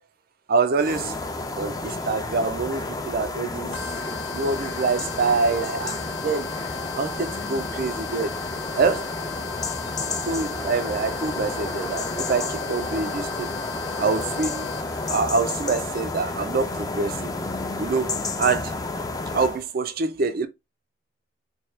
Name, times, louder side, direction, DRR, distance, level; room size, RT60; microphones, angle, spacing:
voice 1, 0.5-1.2 1.6-3.7 4.3-6.5 7.0-8.3 8.7-9.1 10.3-13.5 14.0-14.8 15.1-17.3 17.8-18.7 19.3-20.5, right 4 dB, 50° right, 0.4 m, -25 dB
sound 1, 0.8-19.6, left 3 dB, 20° left, 0.4 m, -31 dB
sound 2, 3.7-15.1, left 6 dB, 70° left, 0.8 m, -38 dB
4.4 x 2.3 x 3.1 m
head